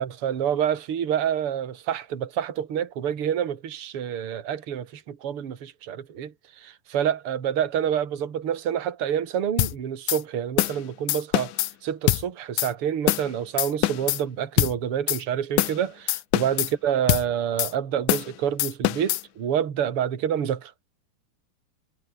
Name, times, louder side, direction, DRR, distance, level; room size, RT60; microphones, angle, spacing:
voice 1, 0.0-20.7, right 9 dB, 45° right, 2.8 m, -28 dB
sound 1, 9.6-9.7 10.1-10.2 10.6-10.8 11.1-11.7 12.1-12.2 12.6-12.7 13.1-13.3 13.6-14.2 14.6-14.7 15.1-15.2 15.6-15.8 16.1-16.7 17.1-17.3 17.6-17.7 18.1-18.3 18.6-19.2, left 17 dB, 75° left, 2.2 m, -23 dB
omnidirectional pair, 3.8 m